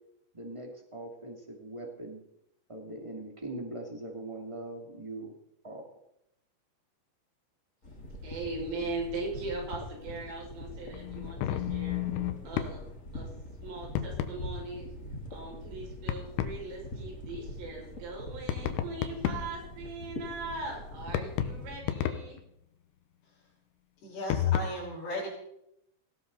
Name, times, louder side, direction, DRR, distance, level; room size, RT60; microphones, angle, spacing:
voice 1, 0.3-2.2 2.7-5.3 5.6-5.8, right 2 dB, 20° right, 0 dB, 0.7 m, -41 dB
sound 1, 7.8-21.8, left 1 dB, 20° left, 2.6 m, -43 dB
voice 2, 8.2-12.0 12.4-12.8 13.1-13.3 13.6-14.9 15.3-22.4, right 3 dB, 80° right, -2 dB, 8.5 m, -39 dB
sound 2, 10.9-12.8 13.9-14.4 16.1-16.6 18.5-19.6 21.1-22.4 24.3-24.6, left 11 dB, 75° left, 3.3 m, -31 dB
voice 3, 24.0-25.3, left 1 dB, 60° left, -8 dB, 7.0 m, -36 dB
18.5 x 17.5 x 4.1 m, 0.79 s
omnidirectional pair, 5.8 m